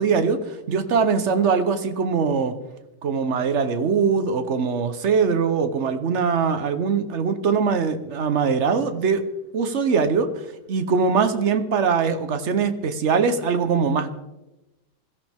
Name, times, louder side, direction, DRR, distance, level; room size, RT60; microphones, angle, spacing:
voice 1, 0.0-2.6 3.0-9.2 9.5-10.3 10.7-14.1, right 5 dB, 50° right, 9 dB, 0.9 m, -22 dB
21.5 x 14.0 x 3.5 m, 1.0 s
omnidirectional pair, 2.3 m